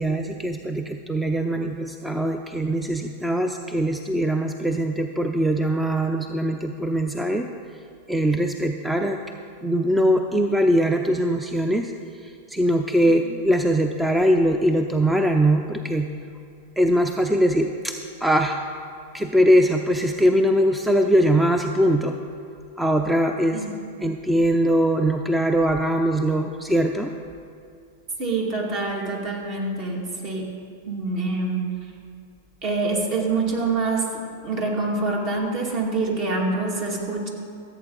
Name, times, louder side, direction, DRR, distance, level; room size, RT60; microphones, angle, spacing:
voice 1, 0.0-7.5 8.1-9.2 9.6-11.9 12.2-16.1 16.8-18.6 19.1-22.2 22.8-23.6 24.0-27.1, equal, 5° right, 5 dB, 0.5 m, -21 dB
voice 2, 28.2-30.5 30.9-31.7 32.6-37.3, right 3 dB, 45° right, 0 dB, 2.4 m, -26 dB
15.0 x 8.1 x 4.0 m, 2.4 s
hypercardioid pair, 110°, 0 cm